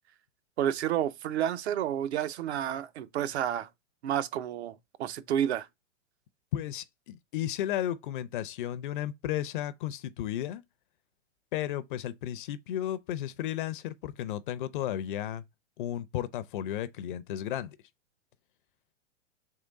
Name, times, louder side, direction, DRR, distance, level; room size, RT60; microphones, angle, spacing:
voice 1, 0.6-3.7 4.0-5.7, right 10 dB, 60° right, 0.6 m, -30 dB
voice 2, 6.5-10.6 11.5-15.4 15.8-17.8, left 12 dB, 45° left, 0.5 m, -34 dB
3.7 x 3.1 x 4.0 m
hypercardioid pair, 125°, 36 cm